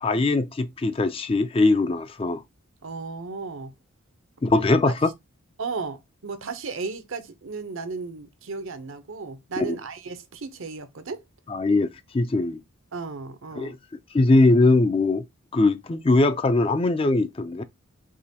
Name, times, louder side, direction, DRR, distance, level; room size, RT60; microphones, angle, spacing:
voice 1, 0.0-2.4 4.4-5.1 9.6-9.7 11.5-12.6 13.6-13.8 14.1-15.2 15.5-17.6, left 2 dB, 25° left, 0.4 m, -21 dB
voice 2, 2.8-3.7 4.9-5.0 5.6-11.2 12.9-13.8, right 4 dB, 65° right, 0.7 m, -34 dB
4.8 x 2.9 x 2.7 m
head